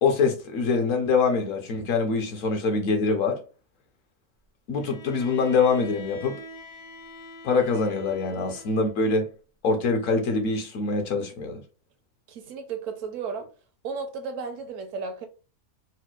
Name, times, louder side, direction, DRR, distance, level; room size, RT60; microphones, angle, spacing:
voice 1, 0.0-3.4 4.7-6.4 7.4-9.3 9.6-11.6, left 4 dB, 65° left, 1.0 m, -24 dB
Bowed string instrument, 4.7-9.0, equal, 85° left, 0.3 m, -44 dB
voice 2, 12.3-13.5 13.8-15.3, right 5 dB, 70° right, 0.9 m, -34 dB
4.2 x 2.1 x 2.3 m
omnidirectional pair, 1.5 m